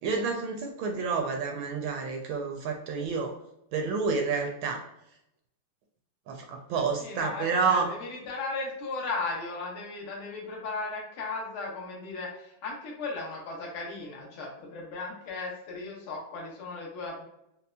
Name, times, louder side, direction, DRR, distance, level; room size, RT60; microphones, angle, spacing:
voice 1, 0.0-3.3 3.7-4.8 6.3-7.9, right 5 dB, 75° right, 3 dB, 1.2 m, -29 dB
voice 2, 6.7-17.2, left 3 dB, 75° left, -2 dB, 1.8 m, -36 dB
5.3 x 2.0 x 2.2 m, 0.81 s
omnidirectional pair, 2.3 m